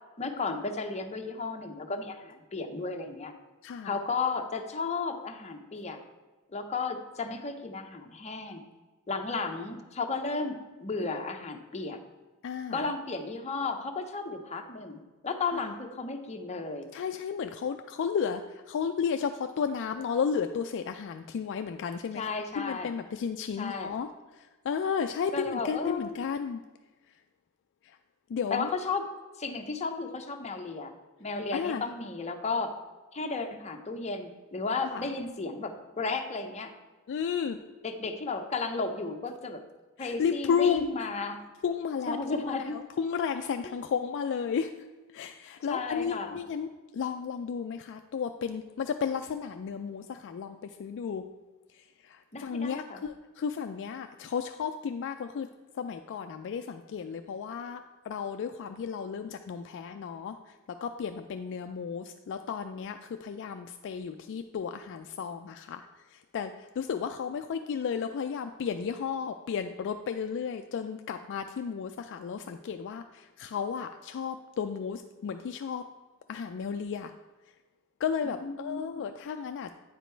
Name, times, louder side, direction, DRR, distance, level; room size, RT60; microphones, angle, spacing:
voice 1, 0.2-3.3 3.8-6.0 6.5-8.6 9.1-12.0 12.7-16.9 22.1-22.9 23.6-24.0 25.3-26.2 28.5-29.0 29.4-30.9 31.2-32.8 33.1-36.7 37.8-39.6 40.0-41.4 42.1-42.8 45.7-46.4 52.3-53.0 78.2-79.1, left 4 dB, 30° left, 5 dB, 0.7 m, -34 dB
voice 2, 3.6-4.0 12.4-12.9 16.9-18.4 18.7-22.2 22.6-24.1 24.4-26.6 28.3-28.7 31.5-31.8 34.9-35.0 37.1-37.6 40.0-40.9 41.6-44.7 45.1-46.7 46.9-51.2 52.0-55.5 55.8-60.4 60.8-75.8 76.3-77.1 78.0-79.7, left 6 dB, 55° left, 7 dB, 0.3 m, -33 dB
8.9 x 5.1 x 4.4 m, 1.2 s
head